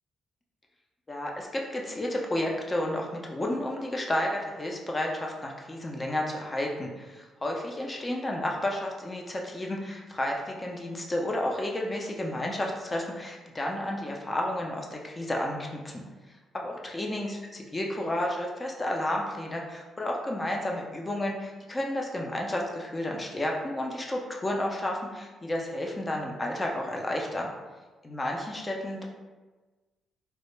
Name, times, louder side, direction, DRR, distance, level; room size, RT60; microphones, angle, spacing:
voice 1, 1.1-16.0 16.5-17.4 17.7-27.5 28.0-29.0, left 1 dB, 25° left, 0 dB, 0.4 m, -31 dB
2.1 x 2.0 x 3.0 m, 1.3 s
cardioid pair, 90°, 0 cm